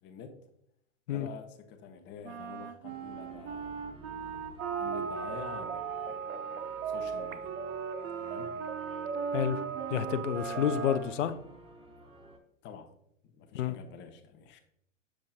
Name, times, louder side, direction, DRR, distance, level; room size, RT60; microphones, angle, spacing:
voice 1, 0.0-0.4 1.1-3.8 4.7-6.3 6.9-7.5 8.2-8.5 12.6-12.9 13.3-14.6, left 7 dB, 25° left, 6 dB, 0.9 m, -47 dB
Wind instrument woodwind instrument, 2.2-11.2, right 7 dB, 55° right, 1.0 m, -41 dB
sound 1, 2.8-12.4, right 2 dB, 15° right, 0.9 m, -54 dB
sound 2, 4.6-11.0, right 6 dB, 75° right, 0.8 m, -37 dB
voice 2, 9.9-11.3 13.5-13.7, left 9 dB, 65° left, 11 dB, 0.7 m, -29 dB
7.4 x 6.3 x 2.4 m, 0.73 s
figure-of-eight pair, 100°, 40 cm